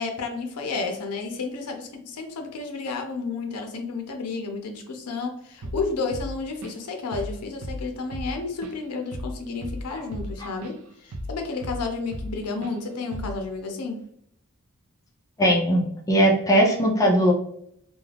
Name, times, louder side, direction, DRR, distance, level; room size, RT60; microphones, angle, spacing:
voice 1, 0.0-10.7 11.0-14.0, left 4 dB, 90° left, 4 dB, 0.6 m, -31 dB
Drum kit / Drum, 5.6-5.9 6.1-6.9 7.1-7.4 7.6-10.8 11.1-12.4 12.6-12.8 13.1-13.5, equal, 70° right, 0.4 m, -35 dB
voice 2, 15.4-17.3, equal, 15° left, -1 dB, 0.5 m, -20 dB
2.4 x 2.3 x 3.2 m, 0.70 s
head